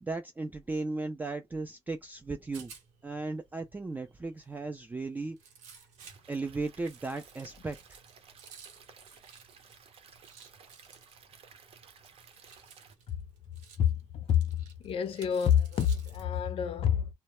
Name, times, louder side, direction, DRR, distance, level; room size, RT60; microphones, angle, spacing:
voice 1, 0.0-2.7 3.0-5.4 6.3-8.0, right 3 dB, 15° right, 0.3 m, -36 dB
Rattle, 2.1-16.3, right 6 dB, 85° right, 1.0 m, -56 dB
Stream / Liquid, 6.0-12.9, right 6 dB, 55° right, 0.7 m, -56 dB
voice 2, 13.8-14.5 14.8-17.1, left 9 dB, 50° left, 0.5 m, -27 dB
2.1 x 2.0 x 3.0 m
cardioid pair, 105°, 12 cm